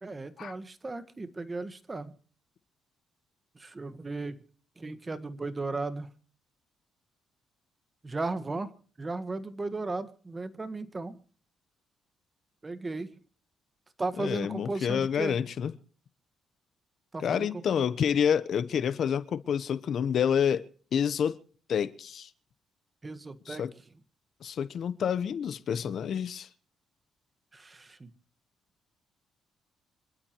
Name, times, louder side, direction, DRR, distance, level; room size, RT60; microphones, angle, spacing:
voice 1, 0.0-2.1 3.5-4.4 4.8-6.1 8.0-8.7 9.0-11.2 12.6-13.1 14.0-15.3 17.1-17.9 23.0-23.6 27.5-28.1, right 3 dB, 25° right, 1.6 m, -36 dB
voice 2, 14.2-15.7 17.2-20.6 20.9-21.4 21.7-22.3 23.5-23.7 24.4-26.5, left 8 dB, 60° left, 1.0 m, -28 dB
26.5 x 12.0 x 3.1 m
cardioid pair, 90°, 0 cm